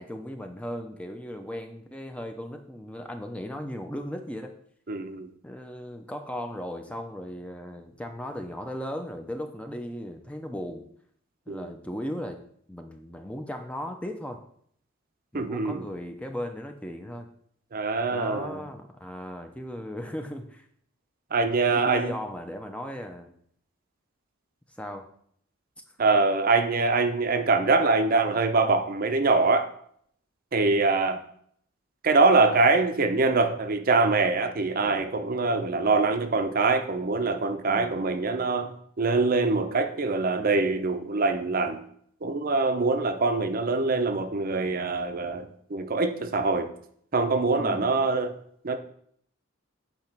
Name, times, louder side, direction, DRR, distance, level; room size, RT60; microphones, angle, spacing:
voice 1, 0.0-4.5 5.4-10.8 11.5-12.4 12.7-14.4 15.3-17.3 18.1-20.7 21.7-23.3 24.8-25.1 34.8-35.1 37.6-38.0 47.6-47.9, equal, 5° left, 0.5 m, -37 dB
voice 2, 4.9-5.3 11.5-11.7 15.3-15.8 17.7-18.6 21.3-22.1 26.0-29.7 30.5-31.2 32.0-41.8 42.2-46.7 47.1-48.3 48.6-48.8, right 3 dB, 45° right, 0.6 m, -24 dB
8.7 x 3.0 x 5.9 m
head